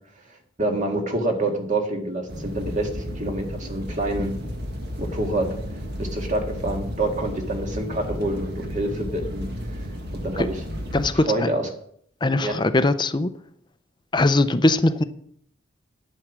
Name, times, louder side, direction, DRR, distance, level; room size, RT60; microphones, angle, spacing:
voice 1, 0.6-4.4 5.0-5.5 6.0-9.5 10.2-10.6 11.2-11.7 12.4-12.6, right 2 dB, 40° right, 3 dB, 1.9 m, -26 dB
sound 1, 2.3-11.1, equal, 55° right, 1.6 m, -33 dB
voice 2, 10.9-11.3 12.2-13.3 14.1-15.0, left 2 dB, 25° left, 11 dB, 0.5 m, -20 dB
9.6 x 8.9 x 6.2 m, 0.68 s
head